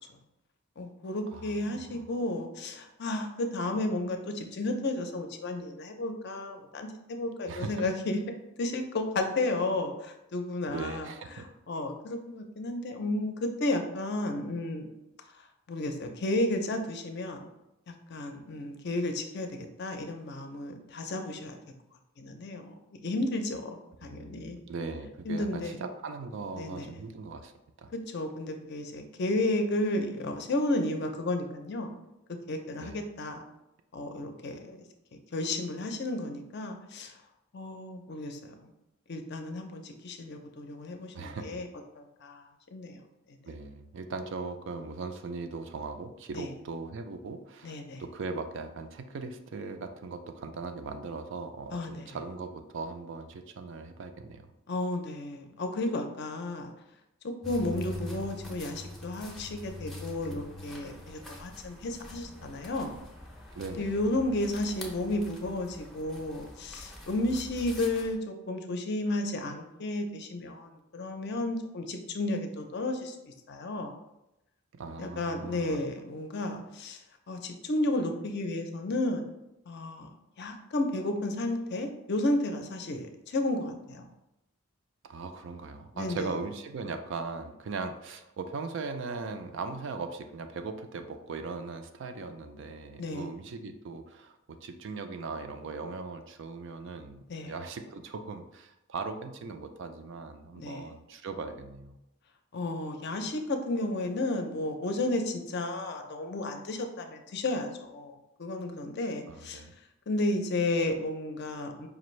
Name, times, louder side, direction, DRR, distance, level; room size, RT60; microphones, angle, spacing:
voice 1, 0.8-8.2 8.6-14.9 15.7-17.4 17.9-21.6 22.2-24.6 25.2-25.8 26.6-27.0 27.9-31.9 32.3-33.4 33.9-34.8 35.1-37.1 37.5-38.7 39.1-41.7 42.0-42.5 42.7-43.0 43.3-43.4 46.3-46.5 47.6-48.0 51.7-52.2 54.7-56.7 57.2-63.0 63.7-73.9 75.0-77.0 77.3-79.3 79.7-80.1 80.4-84.1 85.9-86.3 93.0-93.3 97.3-97.5 100.5-100.9 102.5-109.6 110.1-111.9, left 2 dB, 50° left, 5 dB, 0.5 m, -33 dB
voice 2, 1.3-2.0 7.5-7.9 10.7-11.5 24.0-27.5 27.8-27.9 32.8-33.0 41.1-41.6 43.4-54.5 63.5-64.0 74.7-75.8 85.0-102.0 109.3-109.7, right 4 dB, 60° right, 7 dB, 0.4 m, -39 dB
sound 1, 57.4-68.1, left 1 dB, ahead, 0.5 m, -44 dB
5.0 x 2.5 x 3.1 m, 0.89 s
head